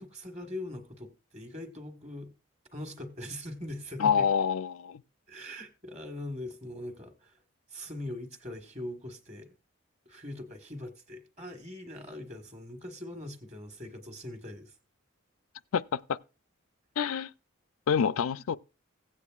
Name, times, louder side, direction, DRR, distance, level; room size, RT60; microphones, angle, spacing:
voice 1, 0.0-2.3 2.7-4.3 5.3-7.3 7.7-9.5 10.0-14.7, left 1 dB, 30° right, 1.4 m, -41 dB
voice 2, 4.0-5.0 15.7-16.2 17.0-17.3 17.9-18.6, left 7 dB, 85° left, 0.4 m, -27 dB
16.0 x 8.3 x 2.4 m
head